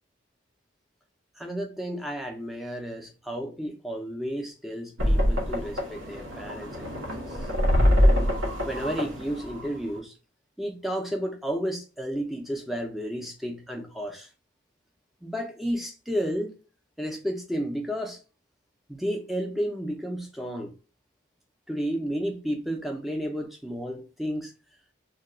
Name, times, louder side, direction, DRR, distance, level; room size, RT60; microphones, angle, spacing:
voice 1, 1.4-7.4 8.0-8.3 8.7-10.1 10.6-14.3 15.2-16.6 17.0-18.2 18.9-20.7 21.7-24.5, equal, ahead, 0.4 m, -32 dB
sound 1, 5.0-10.0, equal, 75° right, 0.9 m, -24 dB
2.3 x 2.2 x 3.7 m
head